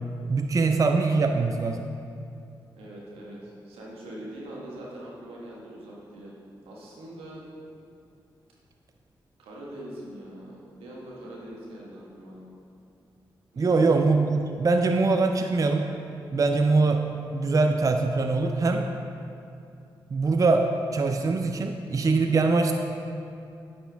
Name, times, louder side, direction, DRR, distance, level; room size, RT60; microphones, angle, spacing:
voice 1, 0.3-1.9 13.6-15.9 16.3-17.0 17.3-18.8 20.1-20.6 20.9-22.7, right 3 dB, 35° right, 4 dB, 0.4 m, -23 dB
voice 2, 2.7-6.3 6.6-7.4 9.4-12.5 13.5-13.8, right 1 dB, 90° right, -4 dB, 1.2 m, -42 dB
9.2 x 4.3 x 3.4 m, 2.6 s
supercardioid pair, 45°, 9 cm